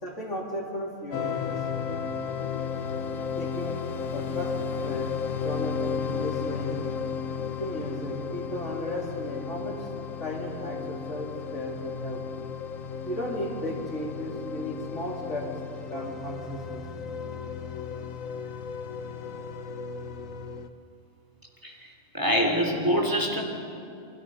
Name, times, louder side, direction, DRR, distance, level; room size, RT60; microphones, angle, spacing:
voice 1, 0.0-1.5 3.4-3.9 4.1-6.8 7.6-9.9 10.2-12.2 13.0-15.5 15.8-17.0, equal, 65° left, -2 dB, 3.9 m, -35 dB
sound 1, 1.1-20.7, left 6 dB, 80° left, 1.4 m, -34 dB
voice 2, 22.1-23.4, equal, 15° right, 1 dB, 3.0 m, -25 dB
29.5 x 23.5 x 5.5 m, 2.6 s
omnidirectional pair, 1.4 m